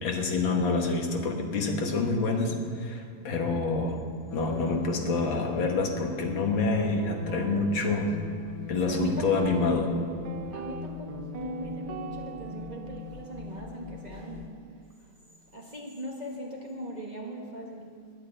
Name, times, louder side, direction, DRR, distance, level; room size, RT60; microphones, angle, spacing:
voice 1, 0.0-4.0 4.3-8.1 8.7-9.9, left 3 dB, 80° left, 3 dB, 2.2 m, -27 dB
sound 1, 4.3-14.5, left 7 dB, 55° left, 0.9 m, -41 dB
Guitar, 6.7-14.9, right 10 dB, 75° right, 1.4 m, -42 dB
voice 2, 8.8-9.6 10.5-14.7 15.0-15.1 15.5-18.1, equal, 25° right, -1 dB, 1.4 m, -39 dB
11.0 x 8.4 x 8.7 m, 2.4 s
omnidirectional pair, 2.1 m